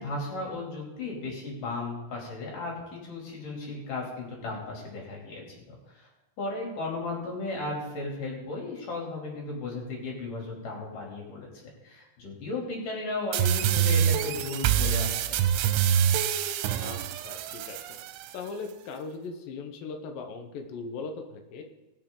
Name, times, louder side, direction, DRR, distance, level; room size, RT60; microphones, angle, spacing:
voice 1, 0.0-6.1 6.4-11.5 11.8-15.4, left 2 dB, 45° left, -2 dB, 4.1 m, -35 dB
sound 1, 13.3-18.3, right 9 dB, 90° right, 3.1 m, -26 dB
voice 2, 16.8-17.8 18.3-21.6, left 4 dB, 85° left, 4 dB, 1.9 m, -39 dB
20.5 x 7.3 x 3.8 m, 1.0 s
omnidirectional pair, 5.5 m